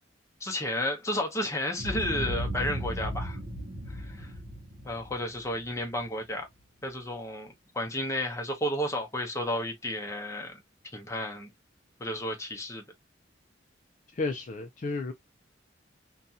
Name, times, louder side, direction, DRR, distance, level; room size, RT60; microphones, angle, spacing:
voice 1, 0.4-3.4 3.9-4.3 4.8-6.5 6.8-10.6 10.9-11.5 12.0-12.8, left 1 dB, 15° left, 0.7 m, -32 dB
Boom, 1.8-6.1, equal, 55° right, 0.7 m, -36 dB
voice 2, 14.1-15.1, left 3 dB, 40° left, 0.4 m, -32 dB
2.6 x 2.3 x 2.7 m
head